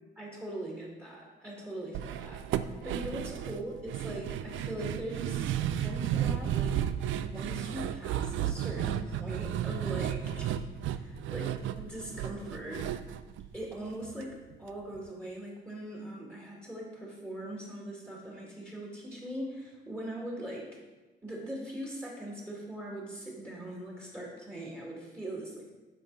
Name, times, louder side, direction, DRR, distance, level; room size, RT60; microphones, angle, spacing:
voice 1, 0.2-6.8 7.2-10.5 10.8-12.9 13.5-20.7 21.2-25.6, right 1 dB, 10° right, -4 dB, 2.0 m, -41 dB
sound 1, 1.9-14.2 14.5-14.6 15.0-15.1, right 10 dB, 75° right, 0.4 m, -33 dB
8.5 x 5.6 x 3.9 m, 1.2 s
cardioid pair, 90°, 20 cm